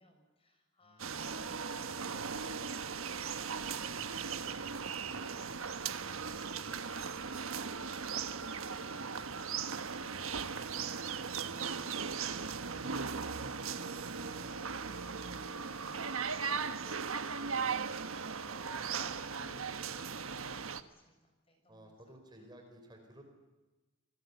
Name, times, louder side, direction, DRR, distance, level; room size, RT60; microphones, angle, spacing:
voice 1, 0.0-7.3 7.6-22.3, equal, 25° left, 4 dB, 6.4 m, -63 dB
voice 2, 0.8-1.2 4.9-5.3 6.6-6.9 11.2-11.6 17.5-17.7 21.7-23.2, right 1 dB, 20° right, 4 dB, 4.8 m, -57 dB
sound 1, 1.0-20.8, right 5 dB, 75° right, 1.3 m, -38 dB
27.5 x 21.5 x 8.3 m, 1.1 s
head